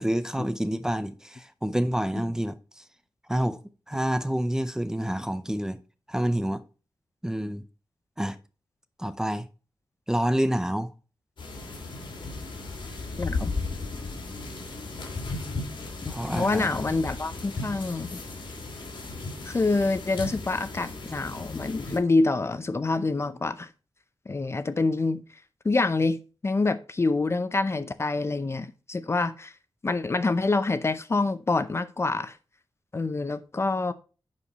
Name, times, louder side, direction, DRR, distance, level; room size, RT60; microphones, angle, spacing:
voice 1, 0.0-2.8 3.3-3.6 3.9-5.8 6.1-6.6 7.2-7.6 8.2-8.4 9.0-9.5 10.1-10.9 16.1-16.7, equal, 5° right, 0.6 m, -28 dB
sound 1, 11.4-22.0, left 3 dB, 70° left, 3.1 m, -35 dB
voice 2, 13.2-13.5 16.0-18.2 19.4-23.7 24.3-25.2 25.6-29.5 29.8-32.4 32.9-33.9, left 3 dB, 30° left, 0.6 m, -26 dB
10.5 x 4.8 x 4.1 m
wide cardioid pair, 110°, 8 cm